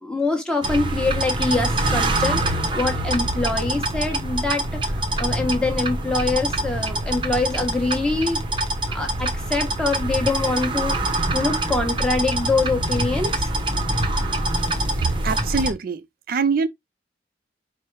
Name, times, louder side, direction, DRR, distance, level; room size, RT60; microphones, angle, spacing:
voice 1, 0.0-8.4 8.9-11.0 11.3-13.5, left 3 dB, 5° left, 1.0 m, -24 dB
sound 1, 0.6-15.7, right 1 dB, 30° right, 0.8 m, -24 dB
voice 2, 15.0-16.7, right 5 dB, 55° right, 0.4 m, -24 dB
4.6 x 2.0 x 4.6 m
head